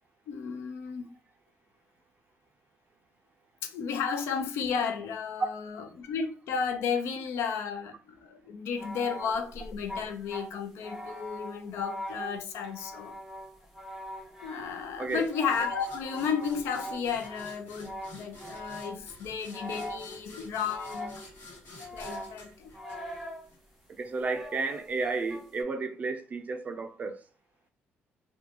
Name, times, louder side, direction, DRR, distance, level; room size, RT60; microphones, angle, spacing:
voice 1, 0.3-1.1 3.6-13.2 14.4-21.1 21.9-22.7, left 6 dB, 80° left, 0.5 m, -33 dB
sound 1, 8.8-19.1 19.5-20.3 20.6-21.5 21.8-23.5 24.2-25.6, equal, ahead, 0.8 m, -42 dB
sound 2, 15.1-23.6, left 2 dB, 50° left, 1.2 m, -50 dB
voice 2, 23.9-27.2, right 3 dB, 35° right, 0.4 m, -32 dB
2.4 x 2.2 x 2.8 m
cardioid pair, 115°, 4 cm